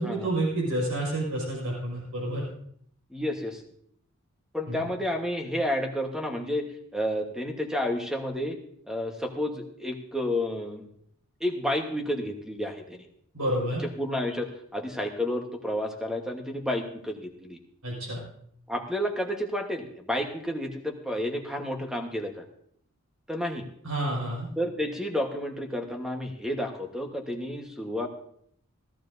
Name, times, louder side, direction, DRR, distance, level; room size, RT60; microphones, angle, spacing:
voice 1, 0.0-2.4 4.7-4.9 13.3-13.9 17.8-18.2 23.8-24.5, right 1 dB, 85° right, -3 dB, 5.3 m, -29 dB
voice 2, 3.1-3.6 4.5-6.7 6.9-8.6 8.9-10.9 11.4-13.1 14.0-17.6 18.7-22.4 23.3-23.7 24.6-28.1, left 1 dB, 5° right, 3 dB, 1.2 m, -31 dB
16.5 x 14.0 x 2.7 m, 0.65 s
head